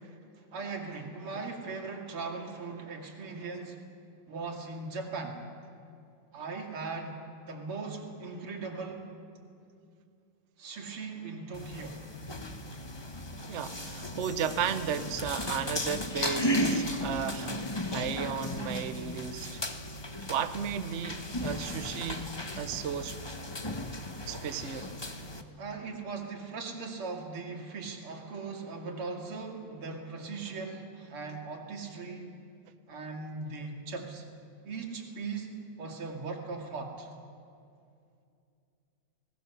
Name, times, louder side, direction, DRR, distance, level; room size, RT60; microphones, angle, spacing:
voice 1, 0.5-3.8 4.3-5.4 6.3-7.2 7.5-9.1 10.6-12.0 16.8-17.1 25.6-32.3 32.9-34.2 34.6-37.1, right 4 dB, 80° right, 2 dB, 3.2 m, -39 dB
sound 1, 11.5-25.4, left 1 dB, 30° left, 0.4 m, -35 dB
voice 2, 13.5-19.6 20.3-22.3 22.6-23.2 24.3-24.9, right 8 dB, 55° right, 10 dB, 0.8 m, -34 dB
25.5 x 19.5 x 6.9 m, 2.5 s
omnidirectional pair, 2.4 m